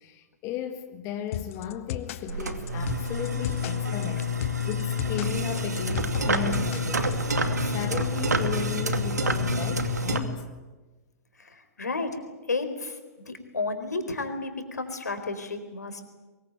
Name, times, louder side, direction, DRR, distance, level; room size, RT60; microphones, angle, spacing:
voice 1, 0.0-10.5, left 9 dB, 35° left, 1.9 m, -36 dB
sound 1, 1.3-7.3, left 11 dB, 50° left, 1.3 m, -36 dB
sound 2, 2.3-10.2, left 1 dB, 80° right, 2.5 m, -27 dB
voice 2, 11.4-12.2 12.5-16.0, left 3 dB, 80° left, 4.2 m, -32 dB
24.0 x 21.5 x 9.5 m
figure-of-eight pair, 110°, 9 cm